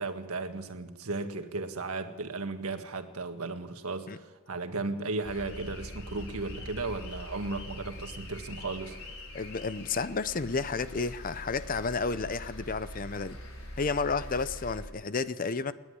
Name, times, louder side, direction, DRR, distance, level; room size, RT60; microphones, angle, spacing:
voice 1, 0.0-8.9, right 3 dB, 90° right, 1.6 m, -35 dB
sound 1, 5.2-14.8, left 1 dB, 75° left, 4.6 m, -43 dB
voice 2, 9.3-13.4 13.8-15.7, left 4 dB, 40° left, 0.7 m, -31 dB
28.5 x 10.5 x 9.9 m
head